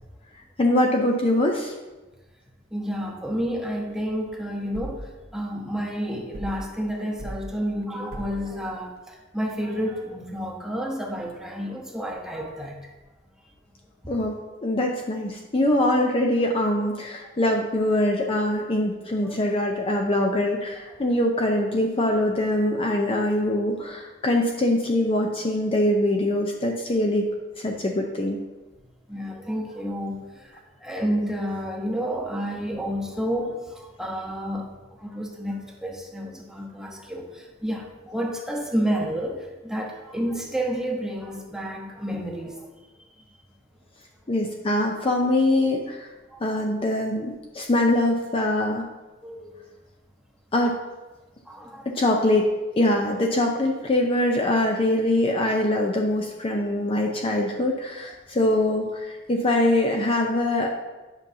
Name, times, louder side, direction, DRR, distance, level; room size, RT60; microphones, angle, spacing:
voice 1, 0.6-1.7 14.1-27.3 27.6-28.4 44.3-46.1 46.4-48.8 50.5-50.8 51.9-52.5 52.8-60.7, left 1 dB, 30° left, 1 dB, 0.5 m, -23 dB
voice 2, 2.7-12.8 19.2-19.4 29.1-42.6 46.3-46.5 49.2-49.6 51.5-51.9, equal, 5° right, 0 dB, 0.9 m, -30 dB
sound 1, 4.7-5.1 6.3-6.7 7.2-7.5 8.1-8.5, right 1 dB, 50° right, 0.8 m, -36 dB
9.8 x 5.5 x 2.7 m, 1.2 s
head